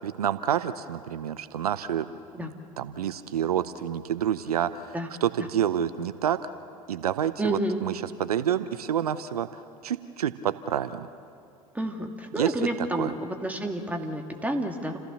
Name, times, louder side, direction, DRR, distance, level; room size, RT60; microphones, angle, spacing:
voice 1, 0.0-2.1 2.4-5.0 5.2-6.4 6.9-11.1 12.4-12.5 12.8-13.1, right 9 dB, 80° right, 13 dB, 0.7 m, -28 dB
voice 2, 7.4-7.8 11.7-15.0, right 1 dB, 10° right, 3 dB, 2.6 m, -30 dB
29.5 x 15.0 x 7.1 m, 2.4 s
hypercardioid pair, 75°, 19 cm